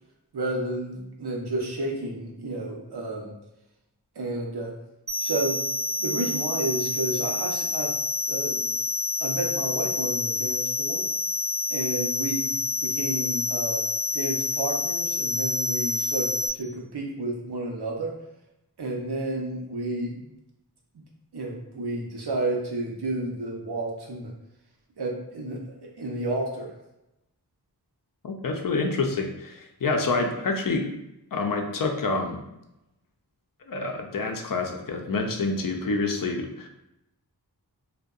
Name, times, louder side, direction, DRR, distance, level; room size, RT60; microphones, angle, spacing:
voice 1, 0.3-3.3 4.2-4.7 5.2-5.6 6.0-7.9 8.3-8.7 9.2-11.0 11.7-12.5 12.8-13.8 14.1-18.1 18.8-20.3 21.3-24.3 25.0-26.7, right 2 dB, 80° right, 0 dB, 0.6 m, -31 dB
sound 1, 5.1-16.5, left 2 dB, 30° right, 0.3 m, -28 dB
voice 2, 28.2-30.9 31.3-32.4 33.7-36.7, left 3 dB, 60° left, 3 dB, 0.5 m, -27 dB
2.6 x 2.1 x 2.3 m, 0.87 s
wide cardioid pair, 45°, 39 cm